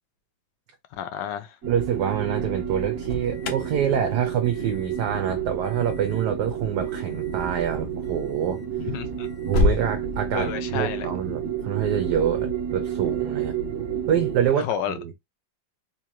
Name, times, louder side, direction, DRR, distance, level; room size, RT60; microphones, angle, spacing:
voice 1, 1.0-1.5 8.8-9.3 10.3-11.1 14.5-14.9, left 9 dB, 75° left, 1.2 m, -30 dB
sound 1, 1.6-14.5, right 8 dB, 45° right, 1.4 m, -30 dB
voice 2, 1.7-8.6 9.4-13.6 14.1-15.1, right 9 dB, 70° right, 1.1 m, -26 dB
Alarm, 2.7-9.9, left 4 dB, 60° left, 0.8 m, -32 dB
3.7 x 2.8 x 2.9 m
omnidirectional pair, 2.1 m